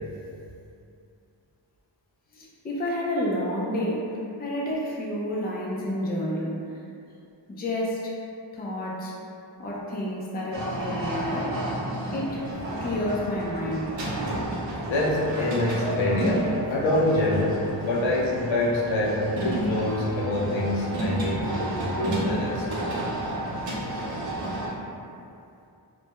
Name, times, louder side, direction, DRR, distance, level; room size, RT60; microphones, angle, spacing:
voice 1, 2.3-4.1 4.4-6.6 7.5-8.1 8.5-9.1 9.6-11.5 12.1-12.5 12.8-14.0, left 1 dB, 25° left, -4 dB, 0.3 m, -29 dB
sound 1, 10.5-24.7, right 1 dB, 75° right, 0.7 m, -31 dB
voice 2, 14.9-22.9, left 1 dB, 90° left, -4 dB, 0.6 m, -26 dB
2.2 x 2.1 x 2.8 m, 2.6 s
wide cardioid pair, 100°, 45 cm